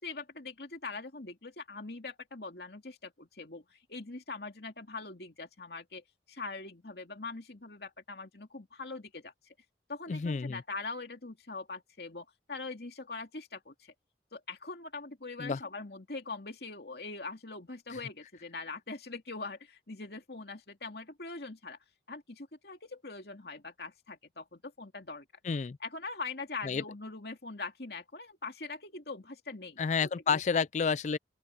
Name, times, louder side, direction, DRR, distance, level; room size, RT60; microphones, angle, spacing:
voice 1, 0.0-9.5 9.9-13.9 14.3-21.8 22.1-25.2 25.8-30.6, left 3 dB, 60° left, 2.6 m, -42 dB
voice 2, 10.1-10.6 15.4-15.6 25.4-25.8 26.6-26.8 29.8-31.2, left 5 dB, 40° left, 0.3 m, -30 dB
open air
head